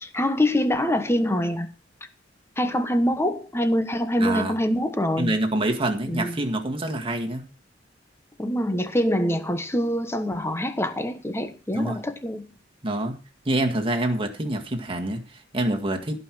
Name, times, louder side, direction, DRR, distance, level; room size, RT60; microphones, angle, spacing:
voice 1, 0.0-1.7 2.6-5.3 6.1-6.4 8.4-12.5, left 1 dB, 15° left, 1.3 m, -25 dB
voice 2, 4.2-4.5 5.2-7.5 11.7-12.0 12.8-13.2 13.5-16.2, right 1 dB, 30° right, 1.8 m, -26 dB
16.5 x 5.6 x 6.1 m
head